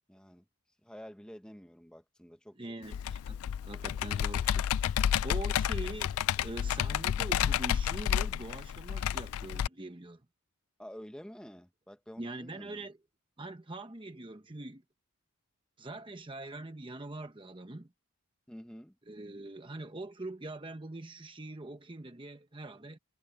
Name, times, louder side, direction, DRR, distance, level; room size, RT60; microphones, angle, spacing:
voice 1, 0.1-0.4 0.8-2.7 10.8-12.9 18.5-18.9, equal, 5° left, 1.2 m, -49 dB
voice 2, 2.6-3.4 3.6-4.9 5.2-10.2 12.2-13.0 13.4-14.8 15.8-17.9 19.1-23.0, right 2 dB, 20° right, 0.9 m, -43 dB
Computer keyboard, 2.9-9.7, left 9 dB, 70° left, 0.3 m, -30 dB
head